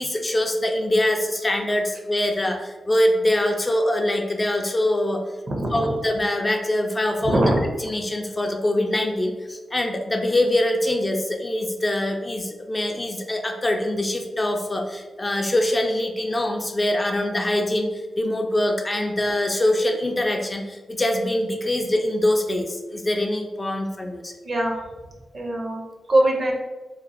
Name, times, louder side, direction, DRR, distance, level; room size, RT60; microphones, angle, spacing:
voice 1, 0.0-5.2 5.7-7.4 7.8-17.9 18.2-24.3, left 1 dB, 25° left, 3 dB, 0.3 m, -23 dB
voice 2, 5.5-5.9 7.2-7.6 24.4-24.8 25.3-25.8 26.1-26.5, right 1 dB, 50° right, 0 dB, 0.6 m, -21 dB
2.9 x 2.1 x 2.6 m, 1.2 s
cardioid pair, 70°, 0 cm